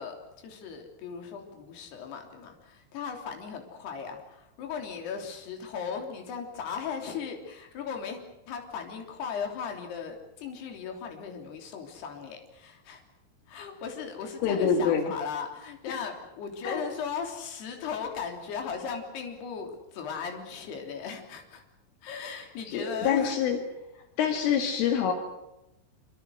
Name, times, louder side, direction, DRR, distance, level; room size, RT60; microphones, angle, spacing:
voice 1, 0.0-13.0 13.5-21.6 22.0-23.4, left 6 dB, 55° left, 3 dB, 5.1 m, -37 dB
voice 2, 14.4-15.2 15.9-16.0 16.6-16.8 22.6-23.6 24.2-25.1, left 7 dB, 75° left, 4 dB, 4.8 m, -26 dB
26.5 x 26.0 x 6.4 m, 0.92 s
omnidirectional pair, 5.8 m